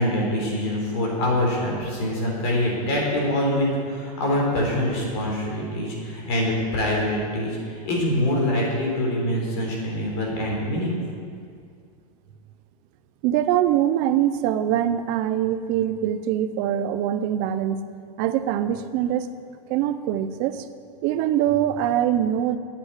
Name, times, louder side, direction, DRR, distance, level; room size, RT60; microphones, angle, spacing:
voice 1, 0.0-11.0, left 1 dB, 40° left, -2 dB, 3.8 m, -24 dB
voice 2, 13.2-17.8 18.2-19.3 19.7-20.7 21.0-22.6, right 11 dB, 25° right, 10 dB, 0.4 m, -23 dB
9.8 x 8.6 x 9.5 m, 2.2 s
supercardioid pair, 180°, 20 cm